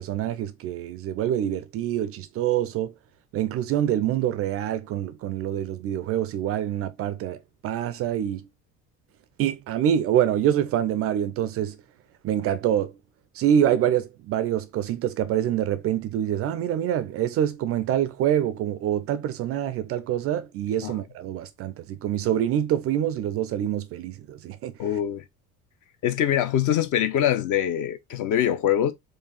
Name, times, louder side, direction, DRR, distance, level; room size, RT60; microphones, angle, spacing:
voice 1, 0.0-2.9 3.3-8.5 9.4-11.8 12.2-12.9 13.3-24.7, right 10 dB, 35° right, 0.4 m, -26 dB
voice 2, 24.8-25.2 26.0-28.9, left 10 dB, 40° left, 0.6 m, -23 dB
4.6 x 2.4 x 4.0 m
figure-of-eight pair, 55°, 45 cm